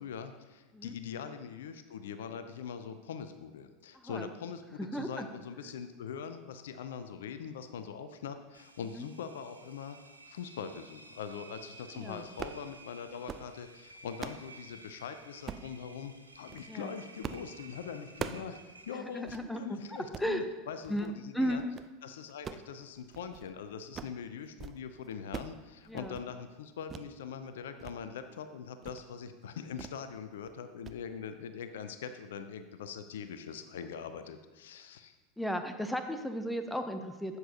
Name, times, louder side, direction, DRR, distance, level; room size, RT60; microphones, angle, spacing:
voice 1, 0.0-10.0 10.3-21.6 22.0-35.2, left 7 dB, 65° left, 10 dB, 0.5 m, -42 dB
voice 2, 3.9-4.3 4.8-5.3 8.9-9.1 11.9-12.2 16.7-16.9 18.9-20.4 20.9-21.7 25.9-26.2 35.4-37.4, equal, 5° left, 7 dB, 0.7 m, -35 dB
Engine, 8.5-19.4, right 2 dB, 80° right, 0.6 m, -54 dB
sound 1, 12.4-12.6 13.1-13.5 13.9-14.5 15.5-15.7 16.3-16.7 17.2-17.5 17.8-18.5 18.9-19.0 19.3-19.4 20.0-20.3 20.8-21.1 21.5-21.9 22.3-23.5 23.8-24.2 24.5-24.8 25.0-25.6 25.9-26.3 26.9-27.1 27.5-28.0 28.3-28.4 28.8-29.1 29.8-30.0 30.3-30.5 30.8-31.0, right 7 dB, 25° right, 0.4 m, -43 dB
12.0 x 8.0 x 2.8 m, 1.2 s
figure-of-eight pair, 80°, 0 cm